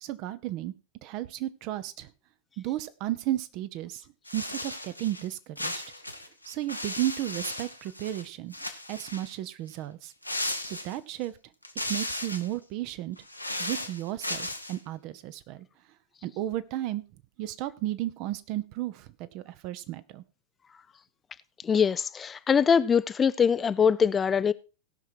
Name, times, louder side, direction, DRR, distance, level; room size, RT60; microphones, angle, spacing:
voice 1, 0.0-0.7 1.0-2.1 2.6-4.0 4.3-5.8 6.5-8.5 8.9-10.1 10.6-11.3 11.8-13.2 13.6-15.6 16.2-17.0 17.4-20.2, right 14 dB, 40° right, 0.8 m, -33 dB
sound 1, 4.3-5.3 5.6-8.3 8.5-9.4 10.2-11.2 11.6-12.5 13.2-14.8, left 1 dB, 90° left, 1.0 m, -35 dB
voice 2, 21.6-24.5, left 7 dB, 20° left, 0.4 m, -23 dB
17.5 x 5.9 x 4.4 m
figure-of-eight pair, 90°, 0 cm